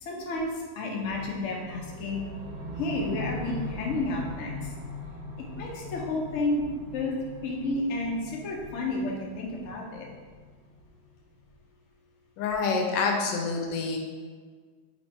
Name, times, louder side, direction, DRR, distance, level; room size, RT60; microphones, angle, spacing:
voice 1, 0.0-0.5 0.8-2.2 2.8-4.7 5.6-6.6 6.9-7.1 7.4-10.1, left 2 dB, 60° left, -1 dB, 0.8 m, -31 dB
sound 1, 1.1-11.2, left 2 dB, 65° right, 0.9 m, -41 dB
voice 2, 12.4-14.0, left 4 dB, 85° left, 2 dB, 1.3 m, -27 dB
3.0 x 2.9 x 4.4 m, 1.6 s
omnidirectional pair, 1.9 m